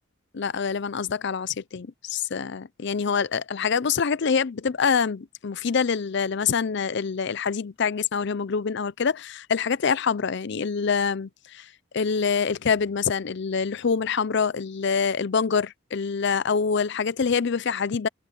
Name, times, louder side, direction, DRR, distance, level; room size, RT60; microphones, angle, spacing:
voice 1, 0.3-11.7 11.9-18.1, left 6 dB, 55° left, 0.5 m, -25 dB
open air
head